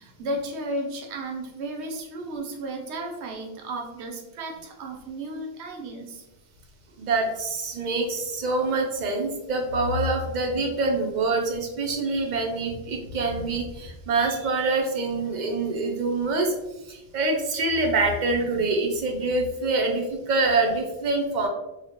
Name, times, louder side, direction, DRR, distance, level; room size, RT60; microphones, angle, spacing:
voice 1, 0.0-6.2, right 1 dB, 80° right, 2 dB, 0.9 m, -34 dB
voice 2, 7.0-16.5 16.9-21.5, right 3 dB, 55° right, 3 dB, 0.5 m, -25 dB
3.1 x 2.0 x 2.7 m, 0.94 s
omnidirectional pair, 1.1 m